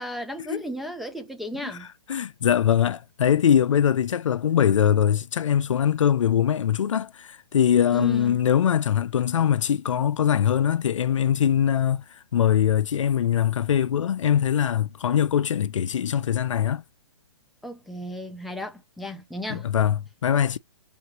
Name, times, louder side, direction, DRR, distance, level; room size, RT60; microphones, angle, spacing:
voice 1, 0.0-1.9 7.9-8.4 17.6-19.7, equal, ahead, 0.3 m, -35 dB
voice 2, 1.6-12.0 12.3-16.8 19.5-20.6, left 9 dB, 80° left, 0.4 m, -22 dB
3.4 x 3.0 x 2.9 m
hypercardioid pair, 145°, 16 cm